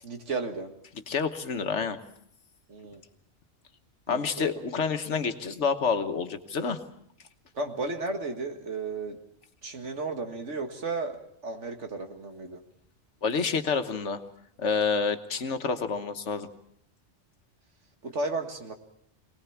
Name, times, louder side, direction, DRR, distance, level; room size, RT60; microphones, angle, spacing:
voice 1, 0.0-0.7 2.7-3.0 4.1-4.6 7.5-9.2 9.6-12.6 18.0-18.7, right 3 dB, 80° right, 5 dB, 2.2 m, -34 dB
voice 2, 1.1-2.0 4.1-6.8 13.2-14.2 14.6-16.5, left 5 dB, 80° left, 8 dB, 1.6 m, -28 dB
23.5 x 19.0 x 7.2 m, 0.70 s
omnidirectional pair, 1.2 m